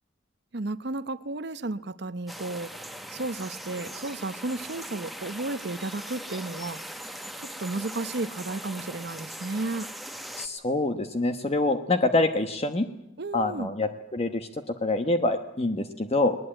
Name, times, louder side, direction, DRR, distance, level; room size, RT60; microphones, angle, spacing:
voice 1, 0.5-7.0 7.4-9.9 13.2-13.7, right 2 dB, 60° right, 13 dB, 0.9 m, -33 dB
sound 1, 2.3-10.5, equal, ahead, 1.3 m, -40 dB
voice 2, 10.4-12.9 13.3-16.4, left 2 dB, 35° left, 7 dB, 1.1 m, -26 dB
20.5 x 20.0 x 8.9 m, 0.90 s
head